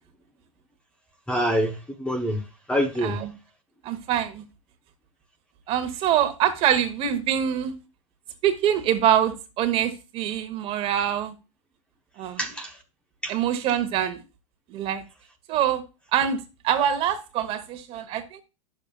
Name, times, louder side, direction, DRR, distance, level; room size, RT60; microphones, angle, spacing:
voice 1, 1.3-2.4 2.7-3.2 12.4-12.8 13.2-13.3, equal, 5° left, 4 dB, 0.9 m, -26 dB
voice 2, 3.8-4.4 5.7-7.7 8.4-11.3 12.2-12.4 13.3-14.2 14.7-15.0 15.5-15.8 16.1-18.4, right 10 dB, 35° right, 8 dB, 1.3 m, -24 dB
10.5 x 6.9 x 2.4 m, 0.28 s
hypercardioid pair, 135°, 17 cm